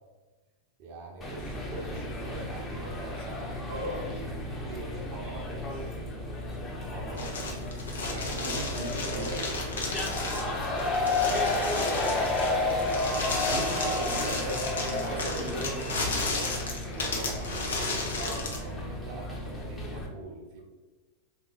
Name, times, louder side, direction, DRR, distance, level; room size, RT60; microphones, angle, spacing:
voice 1, 0.8-3.5 4.0-6.0 6.9-7.8 8.4-9.8 10.3-13.0 13.4-14.1 14.5-15.0 16.8-20.6, right 1 dB, 45° right, 0 dB, 1.0 m, -43 dB
sound 1, 1.2-20.1, left 2 dB, 15° left, 1.0 m, -32 dB
voice 2, 3.7-4.1 6.8-7.4 8.0-9.3 13.4-16.5, right 1 dB, 75° right, -2 dB, 1.1 m, -38 dB
sound 2, 7.2-18.6, left 3 dB, 65° left, 0.9 m, -33 dB
3.8 x 3.0 x 3.9 m, 1.3 s
figure-of-eight pair, 90°, 0 cm